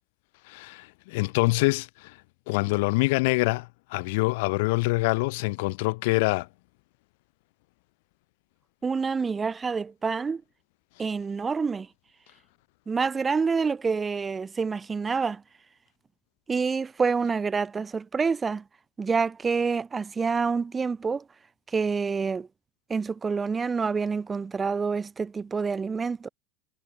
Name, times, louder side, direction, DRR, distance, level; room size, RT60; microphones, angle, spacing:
voice 1, 0.5-2.1 2.5-6.5, left 24 dB, 65° left, 2.5 m, -25 dB
voice 2, 8.8-10.4 11.0-11.9 12.9-15.4 16.5-18.6 19.0-21.2 21.7-22.5 22.9-26.3, right 5 dB, 15° right, 1.3 m, -27 dB
supercardioid pair, 165°, 0 cm